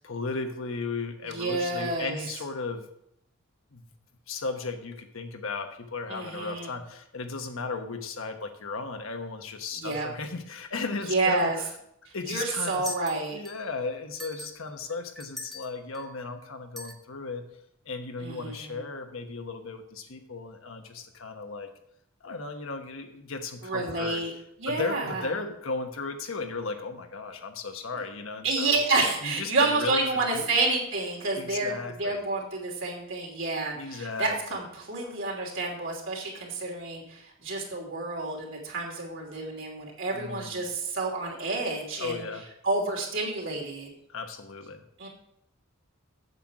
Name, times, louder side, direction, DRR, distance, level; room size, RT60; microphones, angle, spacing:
voice 1, 0.0-2.9 3.7-3.8 4.3-11.7 12.1-12.9 13.3-17.5 17.8-21.7 22.2-24.2 24.7-28.8 29.2-30.0 30.3-30.5 31.4-32.2 33.7-34.3 40.1-40.7 42.0-42.5 44.1-44.8, left 4 dB, 70° left, 5 dB, 1.1 m, -35 dB
voice 2, 1.3-2.2 6.1-6.7 9.8-10.1 11.0-11.6 12.0-13.4 18.2-18.8 23.6-24.3 24.6-25.3 28.4-31.7 32.0-42.2 42.6-43.9 45.0-45.1, right 3 dB, 65° right, -2 dB, 2.9 m, -29 dB
sound 1, 12.6-13.7 14.1-16.1 16.8-17.0, equal, ahead, 1.0 m, -42 dB
8.1 x 7.7 x 4.7 m, 0.75 s
head